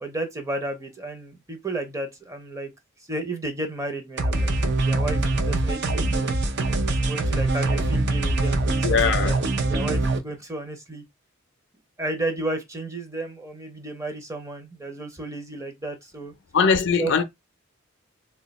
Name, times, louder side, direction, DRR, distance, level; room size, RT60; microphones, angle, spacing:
voice 1, 0.0-2.7 3.1-6.4 7.1-9.4 9.7-11.0 12.0-16.3 17.0-17.2, right 2 dB, 15° right, 0.6 m, -33 dB
sound 1, 4.2-10.2, right 2 dB, 60° right, 0.6 m, -23 dB
voice 2, 8.8-9.4 16.5-17.2, left 6 dB, 60° left, 0.5 m, -21 dB
2.7 x 2.2 x 4.0 m
head